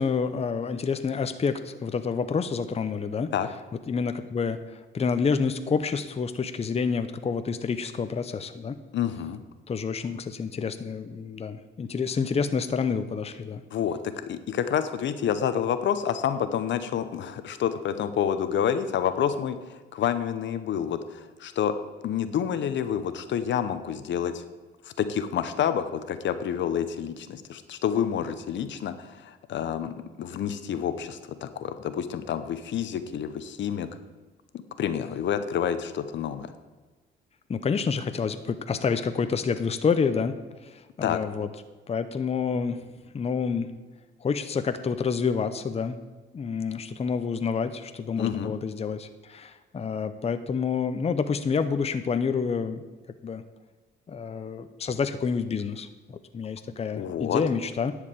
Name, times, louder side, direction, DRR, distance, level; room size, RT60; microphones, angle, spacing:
voice 1, 0.0-3.3 3.9-8.7 9.7-13.6 37.5-41.5 41.9-42.8 43.1-43.7 44.2-46.0 46.3-52.8 53.2-53.4 54.1-57.9, left 5 dB, 30° left, 10 dB, 0.7 m, -28 dB
voice 2, 8.9-9.4 13.7-21.7 22.0-24.4 24.8-33.9 34.8-36.5 41.0-41.2 48.2-48.5 56.9-57.4, left 9 dB, 65° left, 11 dB, 0.8 m, -28 dB
10.5 x 4.9 x 8.3 m, 1.3 s
cardioid pair, 90°, 20 cm